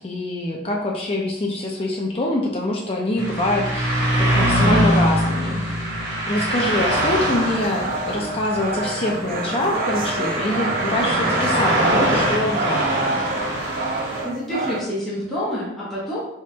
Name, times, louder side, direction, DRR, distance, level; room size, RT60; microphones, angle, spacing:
voice 1, 0.0-6.0 6.3-13.2, left 1 dB, 30° left, -2 dB, 0.4 m, -25 dB
sound 1, 3.2-14.2, right 1 dB, 75° right, 1.5 m, -23 dB
sound 2, 6.8-14.8, right 3 dB, 45° right, 0.4 m, -28 dB
voice 2, 14.2-16.2, equal, ahead, -11 dB, 0.9 m, -27 dB
4.0 x 3.5 x 2.8 m, 0.85 s
head